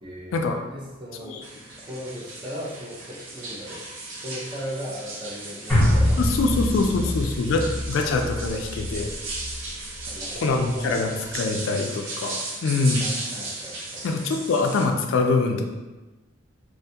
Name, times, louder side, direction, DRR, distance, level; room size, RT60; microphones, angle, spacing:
voice 1, 0.0-1.4 1.8-3.9 4.2-6.3 6.5-6.7 7.0-7.1 7.4-8.2 10.1-10.9 12.9-14.1, equal, 25° right, -3 dB, 0.4 m, -38 dB
sound 1, 1.4-14.9, right 2 dB, 80° right, 0.5 m, -36 dB
sound 2, 5.7-10.1 10.5-10.6, left 1 dB, 5° left, 1.1 m, -25 dB
voice 2, 6.2-9.1 10.4-13.0 14.0-15.7, left 3 dB, 75° left, 4 dB, 0.3 m, -24 dB
2.5 x 2.3 x 2.7 m, 1.1 s
head